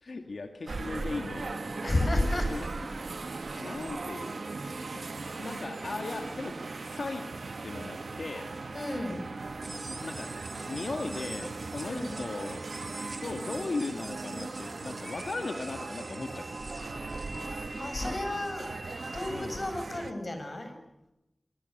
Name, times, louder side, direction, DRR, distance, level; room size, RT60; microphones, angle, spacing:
voice 1, 0.0-1.7 2.3-2.7 3.6-7.3 7.6-8.6 10.0-10.4 10.7-12.7 13.2-16.6 18.0-18.2 19.3-19.6, left 3 dB, 85° left, 5 dB, 2.2 m, -38 dB
sound 1, 0.7-20.1, right 3 dB, 80° right, 1.5 m, -38 dB
voice 2, 1.8-2.5 8.7-9.3 11.8-12.1 17.5-18.7 19.1-20.8, left 1 dB, 50° left, 6 dB, 7.0 m, -32 dB
sound 2, 9.6-17.5, right 2 dB, 45° right, 2.3 m, -46 dB
sound 3, 15.0-19.7, right 1 dB, 10° right, 3.7 m, -47 dB
26.0 x 25.5 x 6.8 m, 0.90 s
wide cardioid pair, 65°, 0 cm